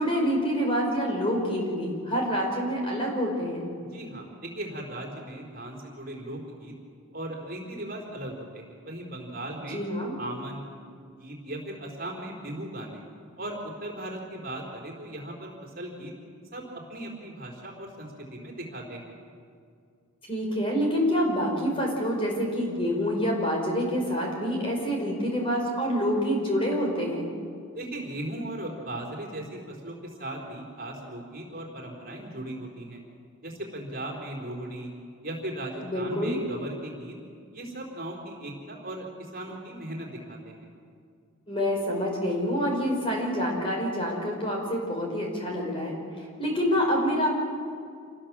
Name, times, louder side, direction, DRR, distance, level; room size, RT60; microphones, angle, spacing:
voice 1, 0.0-3.7 9.7-10.1 20.3-27.3 35.8-36.4 41.5-47.3, equal, 25° left, 0 dB, 5.3 m, -27 dB
voice 2, 3.9-6.7 7.1-9.8 10.2-10.6 11.2-13.0 13.4-16.1 16.5-19.1 27.7-33.0 33.4-34.9 35.2-37.2 37.5-40.7, right 1 dB, 45° right, 0 dB, 4.2 m, -37 dB
27.5 x 19.5 x 7.5 m, 2.2 s
head